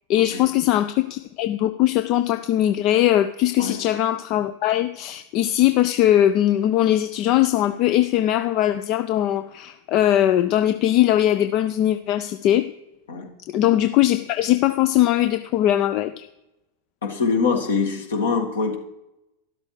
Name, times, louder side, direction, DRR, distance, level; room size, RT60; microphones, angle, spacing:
voice 1, 0.1-12.7 13.5-16.2, left 12 dB, 40° left, 11 dB, 0.4 m, -20 dB
voice 2, 17.0-18.8, left 5 dB, 65° left, 3 dB, 1.7 m, -23 dB
12.5 x 11.0 x 3.2 m, 0.91 s
figure-of-eight pair, 90°, 0 cm